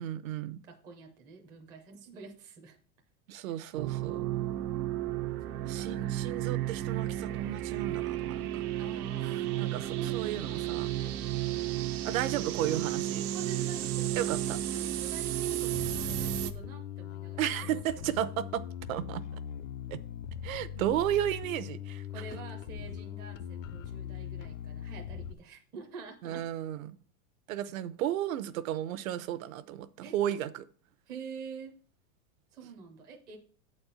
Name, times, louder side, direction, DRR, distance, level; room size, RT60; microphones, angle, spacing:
voice 1, 0.0-0.6 3.3-4.3 5.6-8.6 9.2-10.9 12.0-13.3 14.2-14.6 17.4-18.6 18.9-19.2 19.9-20.0 20.4-22.0 26.2-27.0 27.5-30.6, right 11 dB, 65° right, 0.7 m, -33 dB
voice 2, 0.6-2.8 3.4-3.6 4.3-4.6 5.5-6.5 8.8-10.7 13.3-18.1 22.1-26.5 30.0-30.2 31.1-31.7 32.5-33.4, right 4 dB, 10° right, 0.4 m, -47 dB
sound 1, 3.8-16.5, right 13 dB, 90° right, 0.9 m, -33 dB
Bass guitar, 15.7-25.3, left 10 dB, 60° left, 0.6 m, -41 dB
8.0 x 4.3 x 6.8 m
supercardioid pair, 170°, 44 cm